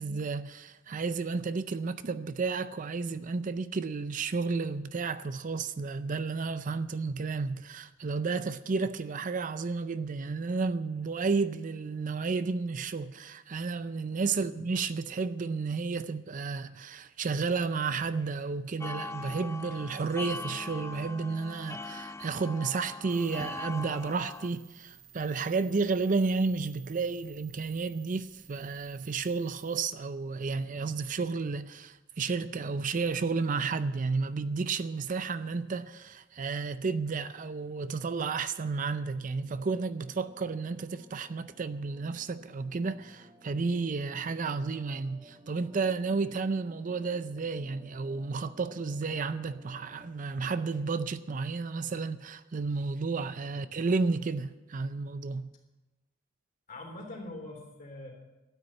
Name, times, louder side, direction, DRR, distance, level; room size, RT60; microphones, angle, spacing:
voice 1, 0.0-55.5, right 4 dB, 40° right, 0.5 m, -32 dB
sound 1, 18.8-24.5, left 3 dB, 15° left, 0.5 m, -41 dB
sound 2, 23.1-29.9, right 9 dB, 70° right, 3.6 m, -56 dB
sound 3, 39.2-50.1, equal, 25° right, 1.7 m, -56 dB
voice 2, 56.7-58.1, left 2 dB, 45° left, 3.5 m, -44 dB
12.5 x 9.5 x 8.7 m
head